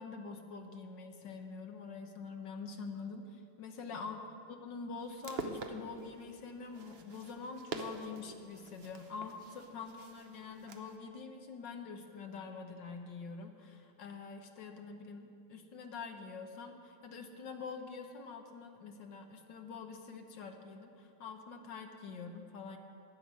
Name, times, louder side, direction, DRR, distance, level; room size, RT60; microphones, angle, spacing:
voice 1, 0.0-4.2 4.6-22.8, left 5 dB, 60° left, 5 dB, 1.5 m, -45 dB
sound 1, 5.0-11.0, right 4 dB, 65° right, 0.6 m, -46 dB
11.0 x 10.5 x 8.2 m, 2.6 s
omnidirectional pair, 2.4 m